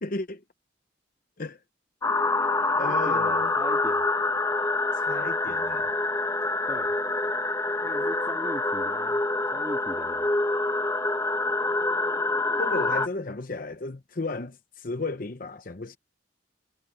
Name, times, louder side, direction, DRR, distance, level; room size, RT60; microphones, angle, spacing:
voice 1, 0.0-0.4 1.4-1.6 2.8-3.5 4.9-5.9 12.6-16.0, left 3 dB, 45° left, 0.9 m, -34 dB
sound 1, 2.0-13.1, left 2 dB, 15° left, 1.5 m, -26 dB
voice 2, 2.7-4.0 6.7-6.9 7.2-7.3 7.8-9.2 9.5-10.3, equal, 15° right, 2.0 m, -39 dB
head